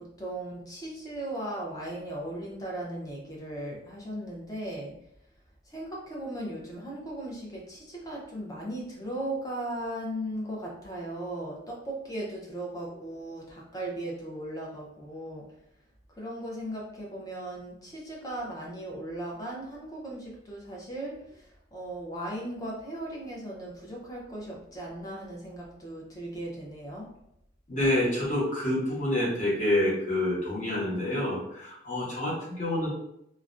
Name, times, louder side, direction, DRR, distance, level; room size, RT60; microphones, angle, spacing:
voice 1, 0.0-4.9 5.6-15.5 16.1-27.1, right 1 dB, 20° left, -3 dB, 0.5 m, -37 dB
voice 2, 27.7-32.9, left 1 dB, 40° left, -7 dB, 0.9 m, -27 dB
2.4 x 2.1 x 2.5 m, 0.77 s
head